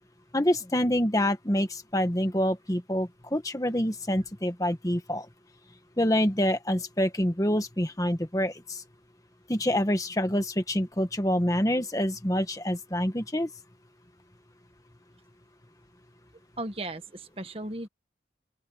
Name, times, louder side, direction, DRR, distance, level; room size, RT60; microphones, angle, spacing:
voice 1, 0.3-5.3 6.0-8.8 9.5-13.5, equal, 20° left, 1.4 m, -26 dB
voice 2, 16.6-17.9, right 2 dB, 30° right, 1.6 m, -36 dB
open air
head